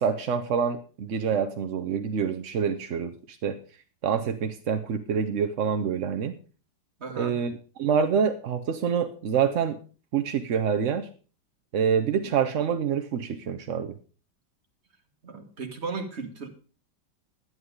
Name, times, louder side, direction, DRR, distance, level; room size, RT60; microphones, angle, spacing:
voice 1, 0.0-3.6 4.0-6.3 7.2-7.5 7.8-9.8 10.1-11.1 11.7-13.9, right 7 dB, 60° right, 7 dB, 0.8 m, -26 dB
voice 2, 7.0-7.3 12.1-12.3 15.2-16.5, right 4 dB, 35° right, 4 dB, 1.8 m, -36 dB
11.5 x 9.6 x 5.0 m, 0.37 s
omnidirectional pair, 2.0 m